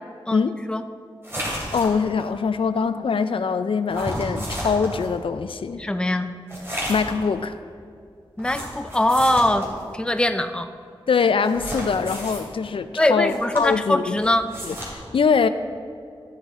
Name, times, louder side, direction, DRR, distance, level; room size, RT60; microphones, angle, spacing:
voice 1, 0.3-0.8 5.8-6.3 8.4-9.7 9.9-10.7 13.0-14.5, left 1 dB, 10° left, 8 dB, 0.5 m, -22 dB
sound 1, 1.2-2.3 3.9-5.1 6.5-7.2 8.4-9.8 11.4-12.4 13.2-13.9 14.2-14.9, equal, 25° right, 2.7 m, -32 dB
voice 2, 1.7-5.9 6.9-7.6 11.1-14.2 14.6-15.5, left 5 dB, 70° left, 11 dB, 0.4 m, -23 dB
13.5 x 7.3 x 3.7 m, 2.3 s
wide cardioid pair, 90°, 9 cm